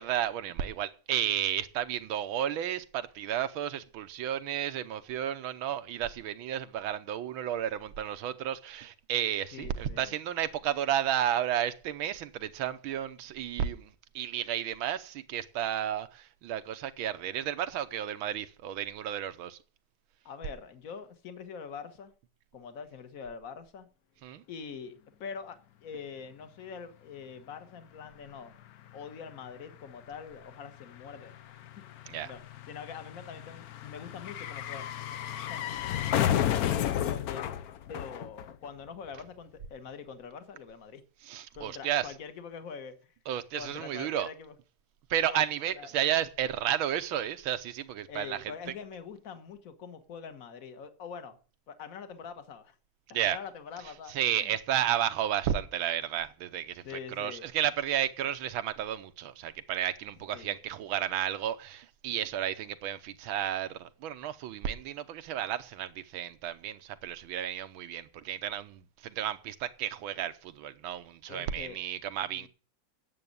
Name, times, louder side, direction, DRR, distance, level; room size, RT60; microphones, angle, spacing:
voice 1, 0.0-19.6 24.2-24.4 32.1-32.3 41.3-42.1 43.3-44.3 45.1-48.4 53.1-53.4 54.1-56.8 57.2-72.5, right 10 dB, 90° right, 1.7 m, -32 dB
voice 2, 9.5-10.1 20.2-22.1 22.5-23.9 24.5-24.9 25.2-28.6 28.9-31.3 31.8-32.4 32.7-34.9 35.5-35.8 37.1-37.5 37.9-41.0 41.5-43.1 43.5-44.5 45.3-45.9 48.1-51.4 51.7-52.8 53.1-54.6 56.8-57.5 60.3-60.6 71.3-71.8 72.3-72.5, left 6 dB, 45° left, 1.6 m, -44 dB
sound 1, 28.2-28.3 28.5-38.9 39.1-39.2, left 10 dB, 65° left, 1.0 m, -33 dB
9.5 x 7.7 x 8.6 m
omnidirectional pair, 2.2 m